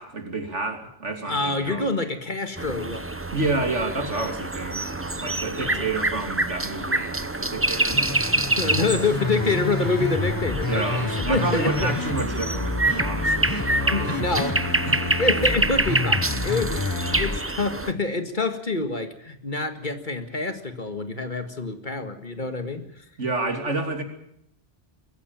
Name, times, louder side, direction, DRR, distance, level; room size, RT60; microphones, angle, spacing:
voice 1, 0.0-1.9 3.3-8.9 10.7-14.4 14.8-15.2 16.7-16.8 23.2-24.0, right 3 dB, 85° right, 5 dB, 3.2 m, -30 dB
voice 2, 1.2-3.2 5.5-5.9 8.6-11.9 13.9-14.6 15.2-16.8 17.2-23.0, left 3 dB, 45° left, 8 dB, 2.0 m, -27 dB
sound 1, 2.6-17.9, right 2 dB, 15° right, 0.8 m, -27 dB
sound 2, 7.9-17.4, left 3 dB, 20° left, 0.9 m, -29 dB
22.5 x 15.0 x 9.0 m, 0.75 s
omnidirectional pair, 1.2 m